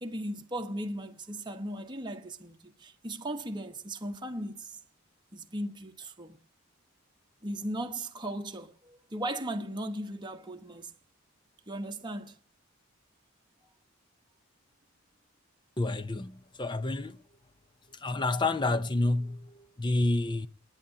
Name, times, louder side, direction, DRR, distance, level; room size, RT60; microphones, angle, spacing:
voice 1, 0.0-4.8 5.3-6.4 7.4-10.9 11.7-12.4, right 1 dB, 20° right, 1.1 m, -37 dB
voice 2, 15.8-17.2 17.9-20.5, left 2 dB, 20° left, 0.6 m, -29 dB
28.5 x 9.9 x 2.8 m
head